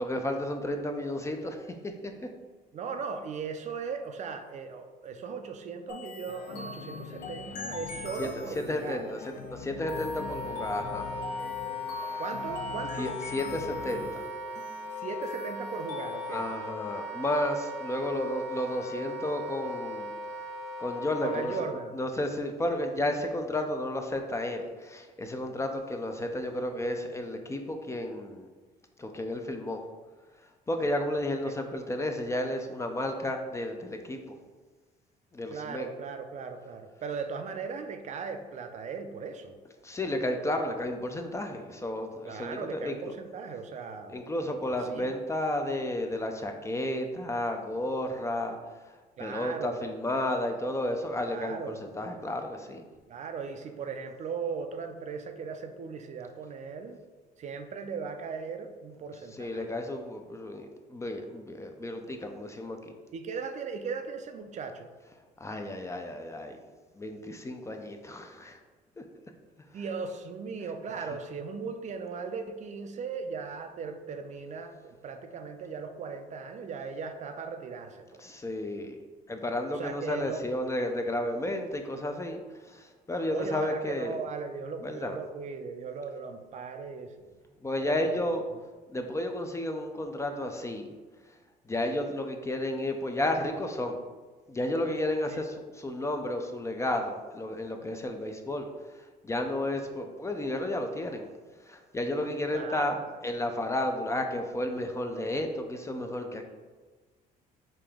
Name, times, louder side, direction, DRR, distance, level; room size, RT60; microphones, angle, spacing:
voice 1, 0.0-2.1 8.2-11.1 13.0-14.3 16.3-20.1 20.8-21.5 21.9-28.5 29.0-29.8 30.7-34.2 35.3-35.9 39.8-43.1 44.1-48.6 48.9-49.0 49.2-52.9 59.3-62.8 65.4-66.6 67.0-68.6 69.0-69.1 78.2-79.0 79.3-82.4 82.7-84.2 84.8-85.2 87.6-88.4 88.9-90.9 91.7-94.0 94.5-98.7 99.2-101.3 101.7-106.4, left 1 dB, 15° left, 5 dB, 0.4 m, -32 dB
voice 2, 2.7-9.0 12.2-13.1 14.9-16.5 21.2-21.9 31.4-31.6 35.5-39.6 42.2-45.1 49.2-49.8 51.3-51.8 53.1-57.0 57.4-59.8 63.1-64.9 69.7-78.2 79.7-80.4 83.3-87.3 87.8-88.1 95.3-95.4 102.5-103.1, right 5 dB, 45° right, 7 dB, 0.4 m, -38 dB
sound 1, 5.9-16.6, left 3 dB, 85° left, 1.1 m, -44 dB
sound 2, 6.3-14.1, left 6 dB, 65° left, 0.6 m, -44 dB
Wind instrument woodwind instrument, 9.7-21.7, left 2 dB, 35° left, 1.3 m, -38 dB
5.1 x 2.8 x 3.5 m, 1.3 s
cardioid pair, 110°, 17 cm